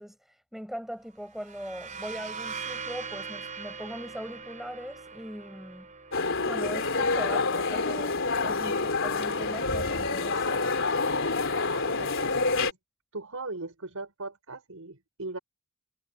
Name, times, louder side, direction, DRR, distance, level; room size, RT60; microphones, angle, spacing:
voice 1, 0.0-5.9 6.4-10.7, equal, ahead, 6.9 m, -40 dB
sound 1, 1.3-8.8, right 5 dB, 35° right, 4.0 m, -42 dB
sound 2, 6.1-12.7, left 3 dB, 65° left, 3.8 m, -27 dB
voice 2, 11.7-12.8 13.1-15.4, right 3 dB, 80° right, 5.2 m, -39 dB
head